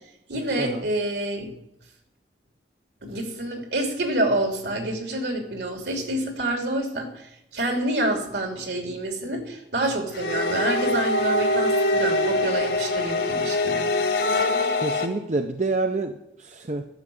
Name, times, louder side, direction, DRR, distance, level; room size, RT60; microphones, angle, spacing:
voice 1, 0.3-1.5 3.0-13.9, right 1 dB, 75° right, 4 dB, 3.0 m, -27 dB
sound 1, 10.1-15.1, left 2 dB, 70° left, 1.9 m, -23 dB
voice 2, 14.8-16.9, right 3 dB, 40° right, 6 dB, 0.7 m, -28 dB
12.0 x 6.7 x 8.6 m, 0.84 s
head